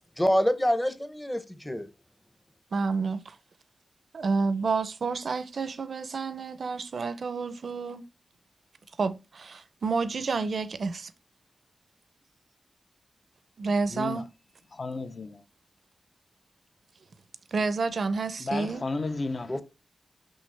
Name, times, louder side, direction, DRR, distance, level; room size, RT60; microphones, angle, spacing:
voice 1, 0.2-1.9 19.5-19.6, equal, 10° left, 0.7 m, -26 dB
voice 2, 2.7-3.3 4.1-8.0 9.0-11.1 13.6-14.3 17.5-18.8, right 4 dB, 65° right, 0.5 m, -29 dB
voice 3, 13.9-14.2 14.7-15.4 18.4-19.6, left 3 dB, 45° left, 0.6 m, -33 dB
6.3 x 5.7 x 3.2 m
wide cardioid pair, 150°, 0 cm